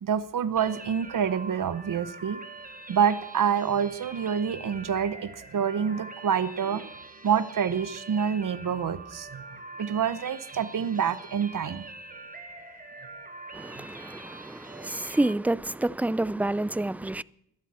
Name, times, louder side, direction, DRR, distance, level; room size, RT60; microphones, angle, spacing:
voice 1, 0.0-2.4 2.9-6.9 7.2-9.4 9.8-11.8, right 7 dB, 60° right, 1.0 m, -27 dB
sound 1, 0.6-15.3, right 3 dB, 25° right, 1.7 m, -44 dB
voice 2, 13.5-17.2, right 2 dB, 5° right, 0.4 m, -29 dB
20.0 x 12.5 x 4.4 m
cardioid pair, 50°, 36 cm